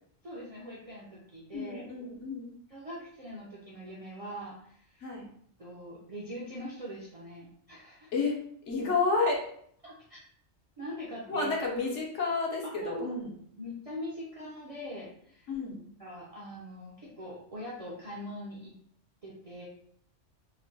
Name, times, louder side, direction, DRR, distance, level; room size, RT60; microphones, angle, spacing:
voice 1, 0.2-1.9 2.7-5.1 5.6-8.1 9.8-10.2 10.8-11.5 12.6-13.0 13.6-15.5 16.0-18.7 19.2-19.7, equal, 50° right, -6 dB, 0.4 m, -42 dB
voice 2, 1.5-2.5 5.0-5.3 8.1-8.4 8.7-9.5 11.3-13.3 15.5-15.9, left 4 dB, 70° left, -1 dB, 1.0 m, -30 dB
3.0 x 2.1 x 2.6 m, 0.65 s
omnidirectional pair, 1.3 m